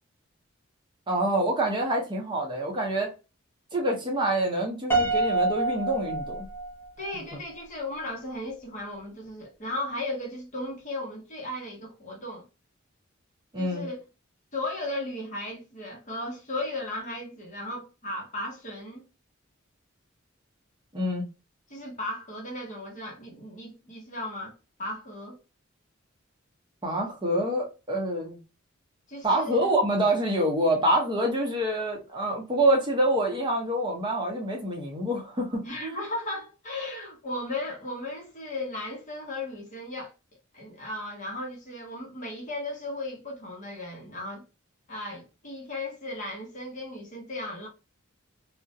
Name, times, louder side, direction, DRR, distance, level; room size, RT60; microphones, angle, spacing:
voice 1, 1.1-3.1 3.7-6.5 13.5-13.8 20.9-21.2 26.8-28.4 29.2-36.0, right 1 dB, 25° right, 0.7 m, -26 dB
Piano, 4.9-7.1, right 3 dB, 10° left, 0.7 m, -27 dB
voice 2, 7.0-12.5 13.6-14.1 14.5-19.1 21.7-24.5 24.8-25.4 29.1-29.7 35.6-40.1 40.5-44.4 44.9-47.7, left 1 dB, 40° left, 0.9 m, -36 dB
2.4 x 2.1 x 2.6 m
head